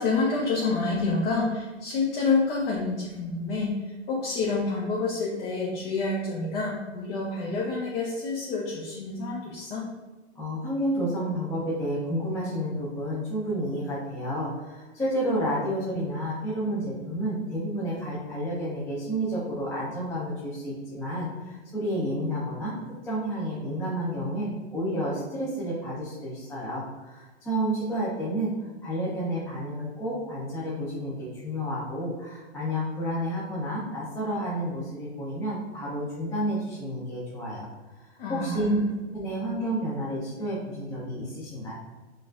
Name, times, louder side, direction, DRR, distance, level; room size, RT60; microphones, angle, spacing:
voice 1, 0.0-9.9 38.2-38.8, left 3 dB, 55° left, -4 dB, 0.9 m, -28 dB
voice 2, 10.3-22.8 23.0-37.7 37.9-38.8 39.1-41.7, equal, 10° left, -7 dB, 0.4 m, -30 dB
4.0 x 2.5 x 2.5 m, 1.2 s
hypercardioid pair, 125°, 34 cm